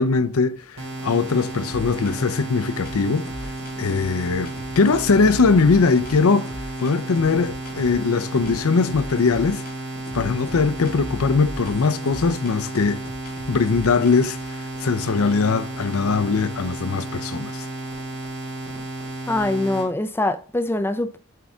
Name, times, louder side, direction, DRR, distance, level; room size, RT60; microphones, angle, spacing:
voice 1, 0.0-3.3 3.8-9.6 10.1-13.0 13.5-17.7, left 4 dB, 65° left, 0.6 m, -21 dB
sound 1, 0.8-19.9, right 2 dB, 85° right, 3.3 m, -33 dB
sound 2, 1.7-2.4 2.8-8.0 8.4-9.8 10.1-14.5, left 1 dB, 40° left, 1.0 m, -39 dB
voice 2, 19.3-21.2, left 2 dB, 10° left, 0.5 m, -23 dB
8.0 x 4.7 x 3.6 m
head